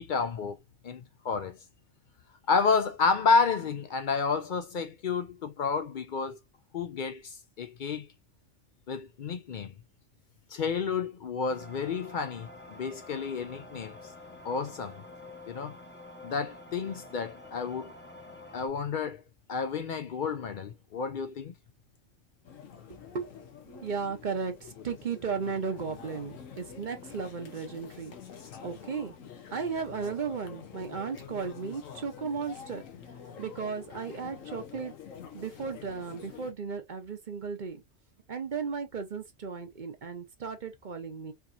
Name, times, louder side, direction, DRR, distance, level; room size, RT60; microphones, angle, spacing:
voice 1, 0.0-1.6 2.5-6.4 6.7-8.1 8.9-9.7 10.5-14.0 14.4-15.0 15.5-15.8 16.2-17.9 18.5-19.2 19.5-21.5, left 5 dB, 60° left, 0.5 m, -30 dB
sound 1, 11.5-18.7, left 2 dB, 10° left, 0.7 m, -48 dB
sound 2, 22.4-36.5, left 8 dB, 85° left, 1.4 m, -47 dB
voice 2, 23.1-28.2 28.6-29.1 29.5-32.8 33.4-34.9 35.3-37.8 38.3-41.3, right 5 dB, 45° right, 0.7 m, -35 dB
4.6 x 2.9 x 2.5 m
omnidirectional pair, 1.3 m